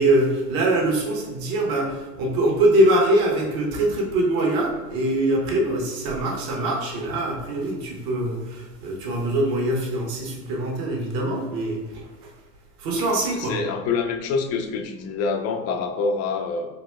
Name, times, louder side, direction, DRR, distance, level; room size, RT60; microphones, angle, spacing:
voice 1, 0.0-12.3 12.8-13.6, right 1 dB, 45° right, -1 dB, 1.1 m, -23 dB
voice 2, 13.3-16.7, left 4 dB, 35° left, 5 dB, 0.4 m, -26 dB
4.0 x 2.8 x 2.2 m, 1.2 s
hypercardioid pair, 75°, 48 cm